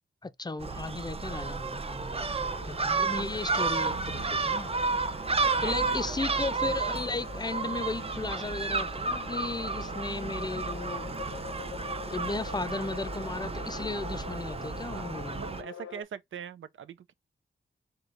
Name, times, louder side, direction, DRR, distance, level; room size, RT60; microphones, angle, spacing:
voice 1, 0.2-4.7 5.6-11.1 12.1-15.4, left 3 dB, 20° left, 0.5 m, -35 dB
Gull seagull, 0.6-15.6, right 4 dB, 30° right, 0.5 m, -32 dB
sound 1, 2.4-16.0, left 6 dB, 75° left, 0.8 m, -46 dB
voice 2, 5.4-6.2 14.8-17.1, right 7 dB, 90° right, 0.5 m, -42 dB
4.7 x 2.9 x 2.5 m
cardioid pair, 60°, 20 cm